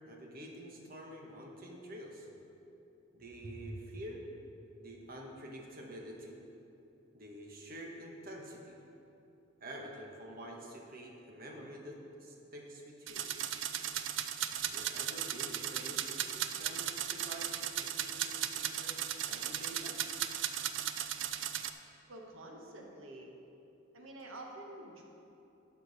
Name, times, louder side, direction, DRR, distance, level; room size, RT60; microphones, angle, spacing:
voice 1, 0.0-2.3 3.1-4.2 4.8-6.4 7.1-8.8 9.6-13.3 14.6-17.5 17.8-19.0 19.3-20.1, equal, 45° right, 0 dB, 1.2 m, -47 dB
sound 1, 13.1-21.7, right 10 dB, 60° right, 0.4 m, -36 dB
voice 2, 22.1-23.3 23.9-25.0, right 1 dB, 85° right, 1 dB, 1.3 m, -48 dB
11.5 x 6.9 x 4.1 m, 2.9 s
head